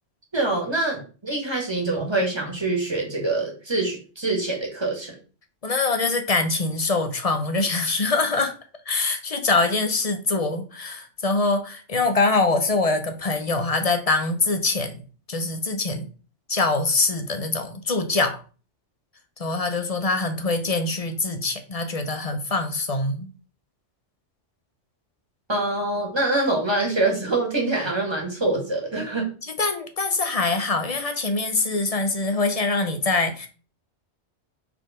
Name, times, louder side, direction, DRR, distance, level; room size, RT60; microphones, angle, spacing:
voice 1, 0.3-5.2 25.5-29.3, right 2 dB, 20° right, 0 dB, 1.9 m, -25 dB
voice 2, 5.6-8.5 8.9-15.0 15.3-16.1 16.5-18.4 19.4-23.3 29.6-33.5, left 3 dB, 35° left, 7 dB, 0.8 m, -24 dB
4.6 x 4.1 x 5.1 m, 0.36 s
omnidirectional pair, 1.2 m